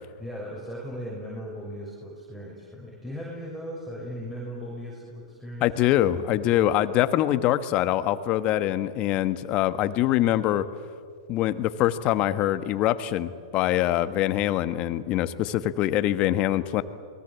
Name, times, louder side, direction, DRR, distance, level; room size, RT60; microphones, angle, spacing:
voice 1, 0.2-5.9, equal, 5° right, -4 dB, 6.3 m, -37 dB
voice 2, 5.6-10.7 11.3-16.8, left 13 dB, 40° left, 12 dB, 1.4 m, -24 dB
29.0 x 21.5 x 8.3 m, 2.1 s
hypercardioid pair, 110°, 3 cm